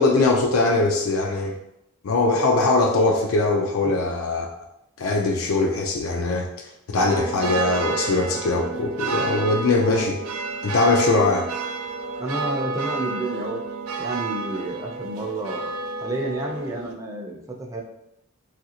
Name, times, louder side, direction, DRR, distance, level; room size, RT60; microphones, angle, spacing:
voice 1, 0.0-1.6 2.0-4.5 5.0-10.2 10.6-11.5, left 3 dB, 75° left, 1 dB, 0.4 m, -21 dB
sound 1, 7.0-16.9, right 3 dB, 85° right, 0.4 m, -30 dB
voice 2, 12.2-13.6 14.0-17.8, right 2 dB, 15° right, 0 dB, 0.4 m, -30 dB
3.1 x 2.5 x 2.8 m, 0.84 s
head